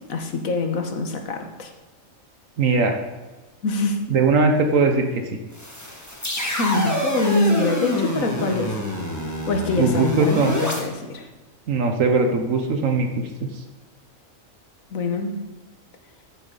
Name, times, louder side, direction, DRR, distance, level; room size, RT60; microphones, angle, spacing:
voice 1, 0.0-1.7 3.6-4.0 6.4-8.8 9.5-11.3 14.9-15.4, left 3 dB, 80° left, 4 dB, 1.6 m, -24 dB
voice 2, 2.6-3.0 4.1-5.4 9.8-10.6 11.7-13.6, right 4 dB, 70° right, 4 dB, 1.3 m, -20 dB
sound 1, 5.5-10.8, left 1 dB, 15° left, 1.6 m, -27 dB
14.0 x 7.0 x 4.0 m, 1.2 s
omnidirectional pair, 1.4 m